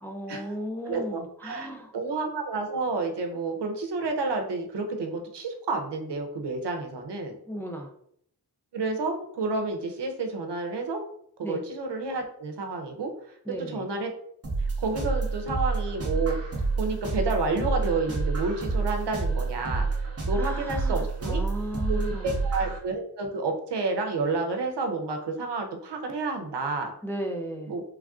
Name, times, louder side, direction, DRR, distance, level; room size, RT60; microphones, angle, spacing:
voice 1, 0.0-1.9 7.5-7.9 11.4-11.6 13.5-13.9 20.3-22.4 27.0-27.8, equal, 5° left, 2 dB, 0.3 m, -36 dB
voice 2, 0.8-7.4 8.7-11.0 11.4-13.1 13.7-14.1 14.6-16.4 16.8-19.9 20.3-21.4 21.9-26.9 27.7-27.8, right 3 dB, 75° right, 4 dB, 0.6 m, -30 dB
sound 1, 14.4-22.8, right 3 dB, 35° right, 0.7 m, -29 dB
3.2 x 2.4 x 2.3 m, 0.67 s
wide cardioid pair, 75°, 41 cm